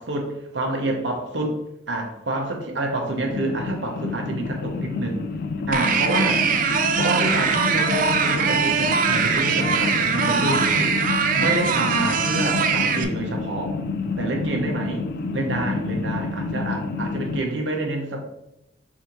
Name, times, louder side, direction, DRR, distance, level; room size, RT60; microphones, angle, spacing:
voice 1, 0.0-1.6 1.9-5.3 5.7-11.0 11.4-13.8 14.2-15.1 15.3-18.2, right 2 dB, 70° right, 1 dB, 1.0 m, -28 dB
sound 1, 3.3-17.4, left 3 dB, 55° left, 0.3 m, -29 dB
sound 2, 5.7-13.0, right 6 dB, 45° right, 0.4 m, -22 dB
6.2 x 2.8 x 3.1 m, 0.83 s
head